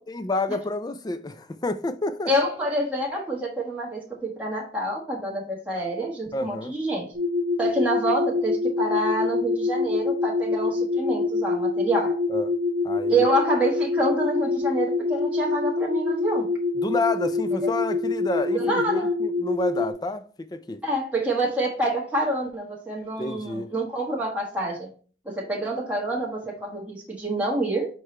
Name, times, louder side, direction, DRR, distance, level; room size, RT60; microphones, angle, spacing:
voice 1, 0.1-2.3 6.3-6.7 12.3-12.5 12.8-13.3 16.8-20.8 23.2-23.7, left 2 dB, 20° left, 0.4 m, -29 dB
voice 2, 2.2-7.1 7.6-12.2 13.1-16.5 17.6-17.7 18.5-19.1 20.8-24.9 25.2-27.9, right 1 dB, 10° right, 1.4 m, -27 dB
sound 1, 7.1-19.9, left 3 dB, 55° right, 1.2 m, -25 dB
6.5 x 4.6 x 3.2 m
head